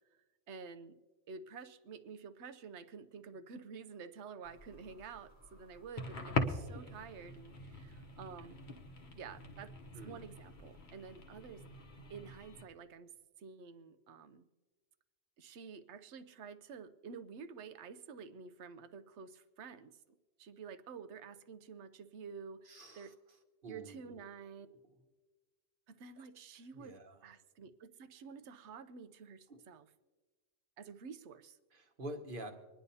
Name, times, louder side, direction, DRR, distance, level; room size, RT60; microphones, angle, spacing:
voice 1, 0.5-1.0 1.3-8.7 9.2-9.7 10.0-11.6 12.1-14.4 15.4-20.0 20.4-23.1 23.7-24.7 25.9-27.0 27.2-29.9 30.8-31.6, right 5 dB, 70° right, 12 dB, 0.9 m, -50 dB
sound 1, 4.4-12.6, left 2 dB, 45° left, 1.0 m, -43 dB
voice 2, 22.7-23.1 23.6-24.0 26.7-27.2 29.5-29.6 31.7-32.5, right 1 dB, 45° right, 4 dB, 1.3 m, -47 dB
25.5 x 10.0 x 2.7 m, 1.3 s
omnidirectional pair, 1.3 m